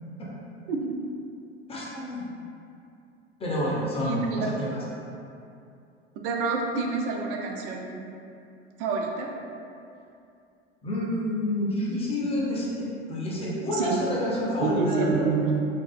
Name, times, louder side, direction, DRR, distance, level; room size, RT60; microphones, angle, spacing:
voice 1, 1.7-2.2 3.4-4.8 10.8-15.3, left 1 dB, 15° left, -6 dB, 0.5 m, -28 dB
voice 2, 4.0-4.6 6.2-8.0 8.8-9.3 13.7-14.1 14.6-15.5, right 4 dB, 50° right, 0 dB, 0.4 m, -28 dB
2.6 x 2.3 x 2.4 m, 2.6 s
figure-of-eight pair, 75°, 36 cm